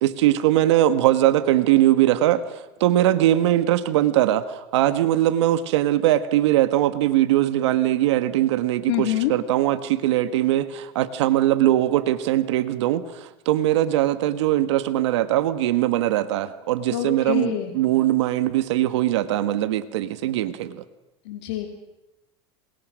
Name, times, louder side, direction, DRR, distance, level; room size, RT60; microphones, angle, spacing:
voice 1, 0.0-20.8, right 13 dB, 85° right, 11 dB, 1.5 m, -21 dB
voice 2, 8.9-9.3 16.9-17.7 21.2-21.7, left 12 dB, 75° left, 4 dB, 3.0 m, -26 dB
28.0 x 27.0 x 6.4 m, 0.97 s
supercardioid pair, 135°, 14 cm